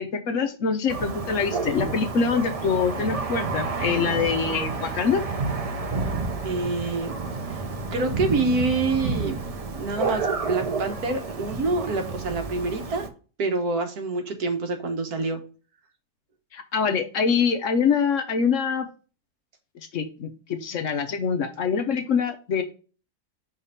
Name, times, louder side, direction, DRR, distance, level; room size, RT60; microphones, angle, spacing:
voice 1, 0.0-5.2 16.5-18.9 19.8-22.6, left 6 dB, 60° left, 7 dB, 1.0 m, -24 dB
Thunder, 0.9-13.1, right 4 dB, 55° right, 0.3 m, -30 dB
voice 2, 6.4-7.1 7.9-9.4 9.7-13.1 13.4-15.4, right 3 dB, 75° right, 6 dB, 1.5 m, -26 dB
5.7 x 3.5 x 5.5 m, 0.36 s
omnidirectional pair, 1.6 m